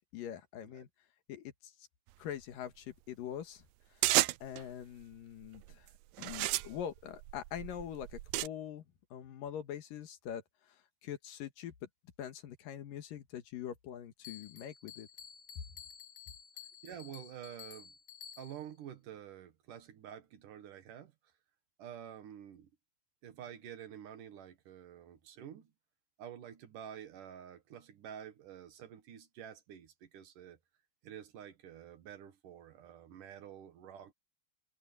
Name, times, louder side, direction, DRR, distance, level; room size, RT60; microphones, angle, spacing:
voice 1, 0.1-0.9 1.3-1.7 2.2-3.7 4.0-4.1 4.4-5.9 6.2-8.8 9.1-10.4 10.7-10.8 11.0-11.7 12.2-15.1, left 10 dB, 90° left, 3.3 m, -43 dB
sound 1, 4.0-4.6 5.4-5.7 6.2-8.5, right 18 dB, 90° right, 2.4 m, -32 dB
Bell, 14.2-18.8, left 8 dB, 60° left, 1.1 m, -52 dB
voice 2, 16.8-17.9 18.4-21.1 21.8-22.7 23.2-25.7 26.2-30.6 31.0-34.1, right 9 dB, 70° right, 3.1 m, -49 dB
omnidirectional pair, 3.8 m